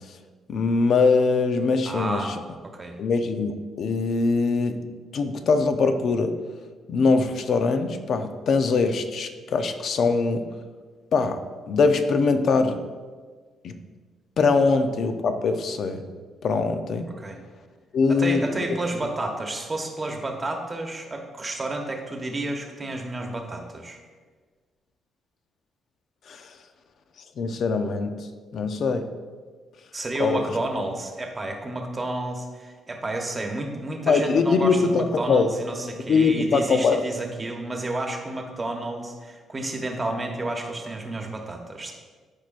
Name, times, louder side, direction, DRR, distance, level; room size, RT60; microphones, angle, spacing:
voice 1, 0.5-2.3 3.0-4.8 5.1-6.4 6.9-10.5 11.1-11.4 11.7-12.8 13.6-13.7 14.4-16.0 16.4-17.1 17.9-18.5 26.3-26.5 27.4-28.3 28.5-29.1 30.2-30.4 34.1-35.5 36.1-37.0, left 4 dB, 60° left, 8 dB, 0.7 m, -22 dB
voice 2, 1.8-2.3 2.6-3.0 17.2-17.4 18.1-24.0 29.9-41.9, right 2 dB, 25° right, 3 dB, 1.1 m, -31 dB
13.0 x 4.8 x 2.5 m, 1.5 s
cardioid pair, 90°, 0 cm